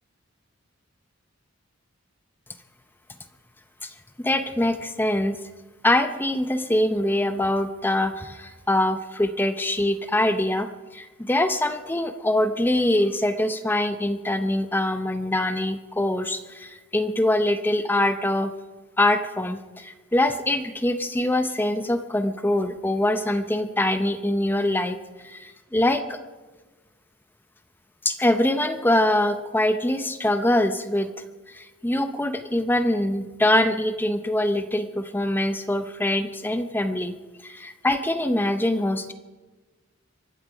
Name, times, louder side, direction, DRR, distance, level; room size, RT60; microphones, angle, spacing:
voice 1, 4.2-5.4 5.8-18.5 19.0-25.0 25.2-26.2 28.0-31.1 31.5-37.1 37.4-39.1, left 1 dB, 10° left, 9 dB, 0.6 m, -24 dB
24.0 x 11.5 x 5.0 m, 1.3 s
head